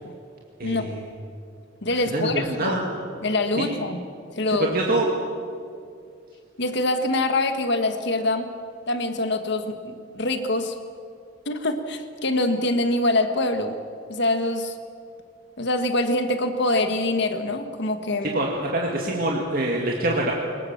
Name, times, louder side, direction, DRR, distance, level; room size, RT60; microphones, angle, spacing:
voice 1, 0.6-1.1 1.9-2.8 3.6-3.7 4.5-5.1 18.3-20.3, right 1 dB, 50° right, -1 dB, 2.2 m, -25 dB
voice 2, 1.8-2.3 2.6-2.8 3.2-4.0 4.4-4.7 6.6-8.5 8.9-10.8 11.4-13.8 14.1-14.7 15.6-18.3, left 2 dB, 65° left, 7 dB, 1.6 m, -24 dB
23.5 x 19.5 x 7.3 m, 2.3 s
head